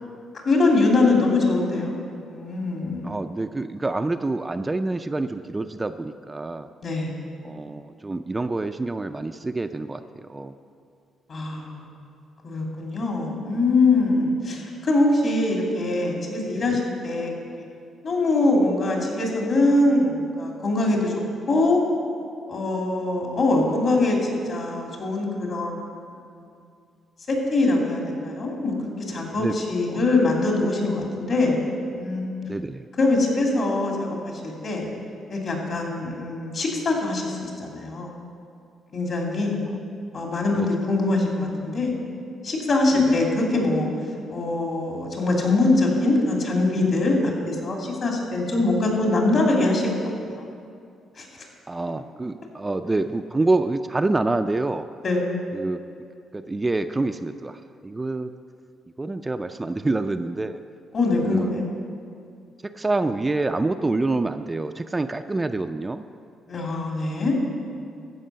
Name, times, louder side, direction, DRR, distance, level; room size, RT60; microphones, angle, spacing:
voice 1, 0.4-1.9 2.2-3.2 6.8-7.1 11.3-11.9 12.4-17.3 18.0-21.1 21.5-21.8 22.5-24.2 24.4-25.8 26.1-26.3 27.3-28.7 29.1-31.6 31.9-32.3 33.0-34.9 35.3-38.1 38.9-39.6 40.1-42.0 42.4-43.9 44.3-49.9 50.3-50.4 51.2-51.3 55.0-55.3 60.9-61.6 66.5-67.4, left 2 dB, 55° left, -1 dB, 2.8 m, -23 dB
voice 2, 3.0-6.7 7.4-10.5 16.5-16.8 29.3-30.0 32.4-32.9 40.5-40.7 42.9-43.2 51.7-54.9 55.5-55.8 56.3-58.3 59.0-60.6 61.2-61.5 62.6-66.0, right 2 dB, 20° right, 8 dB, 0.4 m, -27 dB
14.0 x 5.4 x 6.8 m, 2.4 s
cardioid pair, 90°, 0 cm